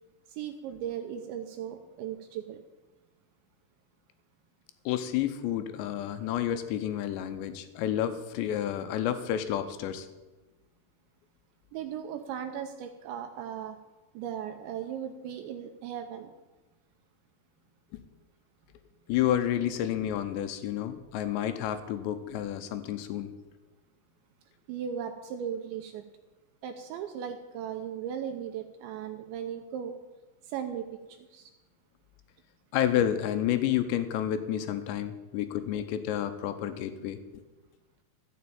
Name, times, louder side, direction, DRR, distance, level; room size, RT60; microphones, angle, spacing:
voice 1, 0.3-2.6 11.7-13.8 14.1-16.3 24.7-26.0 26.6-30.0 30.4-31.5, right 9 dB, 80° right, 6 dB, 2.8 m, -37 dB
voice 2, 4.9-10.1 19.1-23.3 32.7-37.2, left 11 dB, 80° left, 9 dB, 2.7 m, -30 dB
13.5 x 7.3 x 8.7 m, 1.1 s
omnidirectional pair, 5.7 m